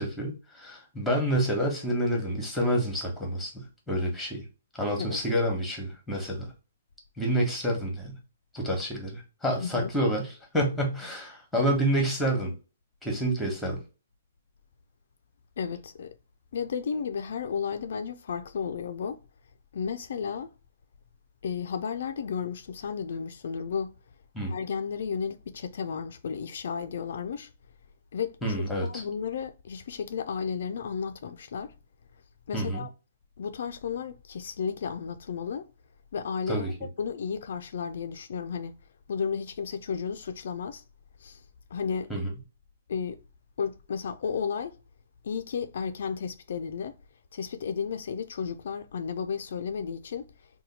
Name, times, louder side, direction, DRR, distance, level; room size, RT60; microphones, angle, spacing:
voice 1, 0.0-4.4 4.8-6.5 7.2-8.1 8.5-12.5 13.0-13.8 24.3-24.5 28.4-29.0 32.5-32.8 36.5-36.7 42.1-42.3, right 1 dB, ahead, 1.0 m, -28 dB
voice 2, 15.6-16.2 16.5-19.2 19.7-20.5 21.4-23.9 24.5-27.5 28.1-31.7 32.5-32.9 33.4-35.7 36.1-36.7 37.0-38.8 39.1-40.8 41.2-41.4 41.7-42.1 42.9-43.2 43.6-44.8 45.2-47.0 47.3-50.3, left 6 dB, 65° left, 0.3 m, -33 dB
2.8 x 2.2 x 4.0 m
hypercardioid pair, 155°, 0 cm